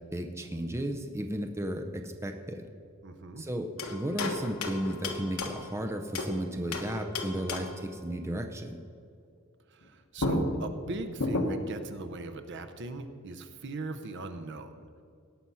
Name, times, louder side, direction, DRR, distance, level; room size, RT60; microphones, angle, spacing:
voice 1, 0.1-2.6 3.4-8.8, right 1 dB, 15° right, 5 dB, 0.6 m, -34 dB
voice 2, 3.0-3.4 9.7-14.9, right 2 dB, 55° right, 9 dB, 0.8 m, -39 dB
sound 1, 3.8-6.4 6.7-7.9 9.8-9.9 10.2-11.8, left 2 dB, 80° left, 1.3 m, -33 dB
17.5 x 6.0 x 5.6 m, 2.4 s
head